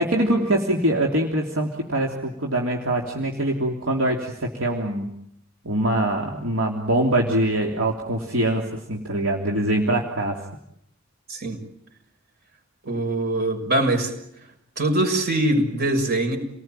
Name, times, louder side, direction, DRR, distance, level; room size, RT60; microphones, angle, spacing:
voice 1, 0.0-5.1 5.6-10.3, right 1 dB, 70° right, 0 dB, 3.3 m, -23 dB
voice 2, 12.8-14.1 14.8-16.4, right 1 dB, 50° right, 5 dB, 6.5 m, -22 dB
30.0 x 19.5 x 9.1 m, 0.78 s
head